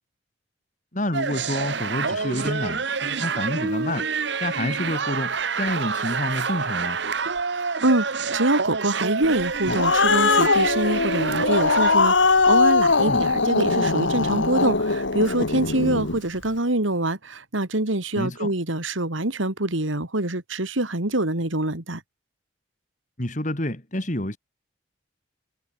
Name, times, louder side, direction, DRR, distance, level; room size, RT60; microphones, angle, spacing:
voice 1, 0.9-4.1 4.4-7.0 13.0-13.3 18.1-18.5 23.2-24.4, left 1 dB, 40° left, 3.1 m, -28 dB
sound 1, 1.1-12.0, right 5 dB, 65° right, 1.2 m, -27 dB
voice 2, 7.5-22.0, right 2 dB, 80° right, 3.0 m, -25 dB
Growling, 9.4-16.2, left 4 dB, 75° left, 1.8 m, -21 dB
head